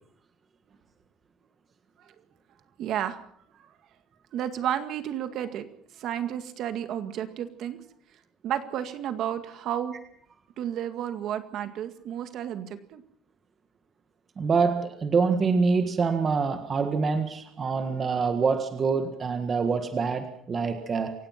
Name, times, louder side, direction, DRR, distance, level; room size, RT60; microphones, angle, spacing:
voice 1, 2.8-3.2 4.3-5.7 6.0-7.8 8.4-9.9 10.6-13.0, right 10 dB, 45° right, 9 dB, 2.0 m, -32 dB
voice 2, 14.4-21.1, right 5 dB, 25° right, 7 dB, 1.6 m, -25 dB
27.5 x 17.0 x 5.9 m, 0.63 s
cardioid pair, 175°, 0 cm